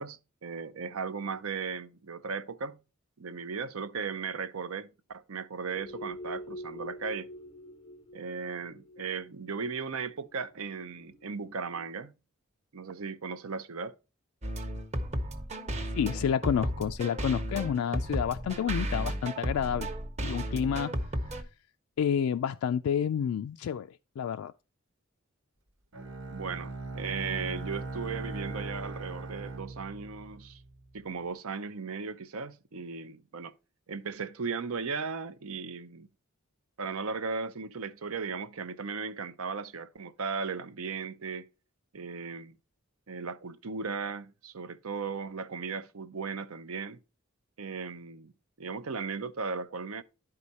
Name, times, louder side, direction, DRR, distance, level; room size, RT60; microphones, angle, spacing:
voice 1, 0.0-2.8 3.2-7.3 8.1-12.1 12.7-13.9 26.3-30.6 30.9-33.5 33.9-36.1 36.8-41.5 41.9-42.5 43.1-47.0 47.6-48.3 48.6-50.0, right 5 dB, 85° right, 0.7 m, -36 dB
sound 1, 5.7-11.9, equal, 25° left, 0.5 m, -45 dB
sound 2, 14.4-21.4, equal, 30° right, 0.9 m, -34 dB
voice 2, 15.9-19.9 20.2-21.0 22.0-24.5, left 8 dB, 85° left, 0.3 m, -29 dB
Bowed string instrument, 25.9-30.9, right 3 dB, 65° right, 1.2 m, -39 dB
11.0 x 4.8 x 4.1 m
head